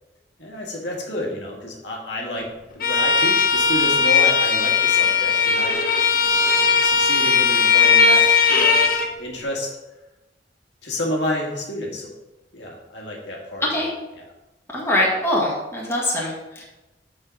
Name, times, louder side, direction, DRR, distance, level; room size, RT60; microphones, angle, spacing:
voice 1, 0.4-2.5 2.7-5.8 6.2-9.8 10.8-12.1 12.5-13.9 14.1-14.2, left 1 dB, 75° left, -1 dB, 1.7 m, -30 dB
Bowed string instrument, 2.8-9.1, left 5 dB, 55° left, 1.0 m, -18 dB
voice 2, 14.7-16.6, left 1 dB, 15° left, -4 dB, 1.8 m, -23 dB
7.0 x 5.0 x 5.0 m, 1.0 s
head